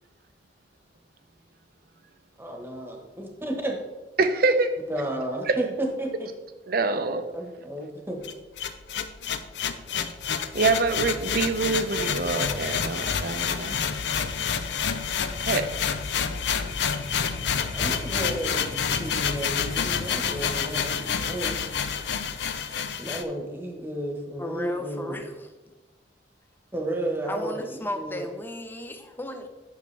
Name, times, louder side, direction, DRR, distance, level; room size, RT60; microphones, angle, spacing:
voice 1, 2.4-3.8 4.9-6.3 6.8-6.9 7.3-8.2 17.7-21.6 23.0-25.2 26.7-28.2, right 1 dB, 15° right, 1 dB, 1.2 m, -32 dB
voice 2, 4.2-4.7 5.5-5.6 6.7-7.2 10.5-13.8 15.4-15.7, right 3 dB, 60° right, 9 dB, 0.7 m, -25 dB
sound 1, 8.2-23.2, left 7 dB, 75° left, 0.5 m, -28 dB
voice 3, 24.4-25.5 27.3-29.5, left 1 dB, 10° left, 6 dB, 0.7 m, -35 dB
9.4 x 6.6 x 3.3 m, 1.1 s
head